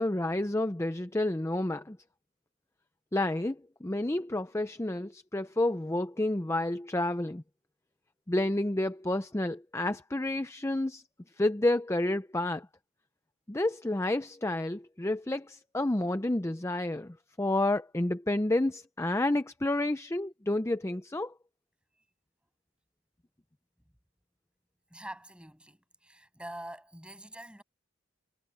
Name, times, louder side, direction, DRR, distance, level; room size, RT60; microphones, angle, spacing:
voice 1, 0.0-2.0 3.1-7.4 8.3-11.0 11.4-12.7 13.5-21.3, left 1 dB, 15° left, 0.5 m, -30 dB
voice 2, 24.9-27.6, right 1 dB, 5° right, 7.8 m, -45 dB
head